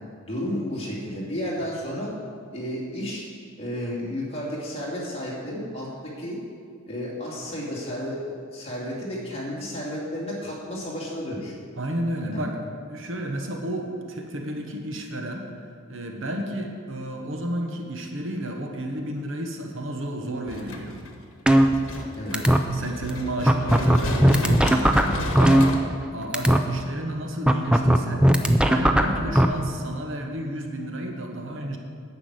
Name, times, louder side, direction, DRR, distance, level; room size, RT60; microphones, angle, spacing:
voice 1, 0.2-2.1 2.5-3.2 3.6-6.4 6.9-8.2 8.5-11.5 12.3-12.5 22.2-22.3, equal, 30° left, -5 dB, 2.6 m, -32 dB
voice 2, 11.8-12.6 12.9-15.4 15.9-21.1 22.3-22.4 22.7-25.7 26.1-28.3 28.6-31.8, right 1 dB, 70° right, 3 dB, 1.1 m, -31 dB
sound 1, 20.5-25.8, left 1 dB, 70° left, 1.3 m, -32 dB
sound 2, 21.5-22.1 22.3-22.6 23.1-23.2 23.5-26.1 26.3-26.6 27.5-29.4, right 1 dB, 5° right, 0.4 m, -17 dB
9.8 x 6.1 x 8.1 m, 2.1 s
head